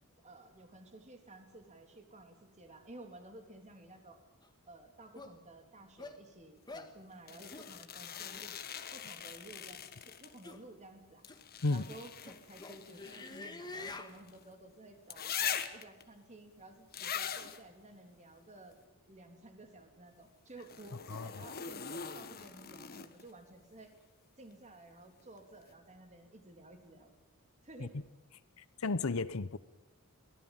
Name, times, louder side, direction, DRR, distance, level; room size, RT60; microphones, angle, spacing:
voice 1, 0.2-4.2 4.6-8.6 8.9-11.2 11.7-18.8 19.1-24.0 24.4-27.2 27.6-27.9, right 2 dB, 30° right, 5 dB, 3.3 m, -54 dB
sound 1, 4.4-4.5 5.2-5.3 6.0-6.2 6.7-6.9 7.5-7.7 8.3-8.5 9.4-9.7 10.4-10.6 11.3-11.4 11.9-14.1, left 3 dB, 20° left, 1.6 m, -47 dB
sound 2, 7.3-10.5 11.2-14.4 15.1-16.0 16.9-17.6 20.6-23.3 25.2-25.3, left 8 dB, 45° left, 1.6 m, -42 dB
voice 2, 28.6-29.6, left 3 dB, 70° left, 16 dB, 0.9 m, -33 dB
23.5 x 17.5 x 8.9 m, 0.98 s
head